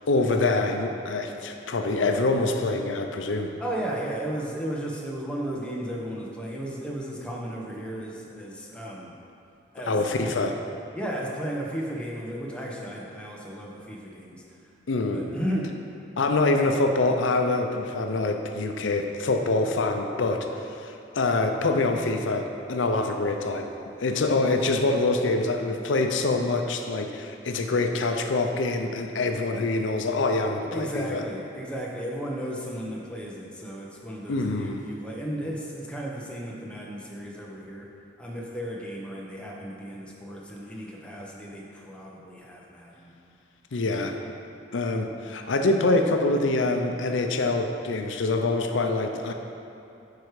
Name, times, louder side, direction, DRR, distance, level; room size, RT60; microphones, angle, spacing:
voice 1, 0.1-3.5 9.9-10.6 14.9-15.2 16.2-23.7 24.0-31.2 34.3-34.8 43.7-44.2 44.7-49.3, left 2 dB, 90° left, 5 dB, 0.6 m, -25 dB
voice 2, 3.6-9.1 9.7-10.0 10.9-14.4 15.1-15.7 30.7-37.9 38.2-43.1 43.8-44.1, equal, 5° left, -3 dB, 0.8 m, -34 dB
9.6 x 4.7 x 4.8 m, 2.7 s
head